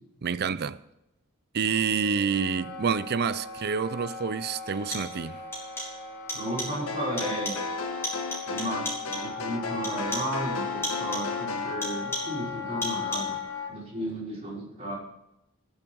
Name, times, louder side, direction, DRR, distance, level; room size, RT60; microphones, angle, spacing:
voice 1, 0.2-0.8 1.5-5.4, right 6 dB, 45° right, 0.5 m, -28 dB
Wind instrument woodwind instrument, 1.6-13.7, left 6 dB, 50° left, 3.8 m, -37 dB
sound 1, 3.6-3.7 4.7-5.3 5.5-6.0 6.3-6.9 7.2-7.8 8.0-9.4 9.8-10.4 10.8-11.4 11.8-12.5 12.8-13.4, left 1 dB, 10° left, 4.8 m, -36 dB
voice 2, 6.3-7.6 8.5-13.4 13.7-15.0, right 1 dB, 30° right, 5.4 m, -34 dB
sound 2, 6.9-11.8, left 3 dB, 70° left, 1.6 m, -35 dB
20.0 x 7.2 x 4.7 m
head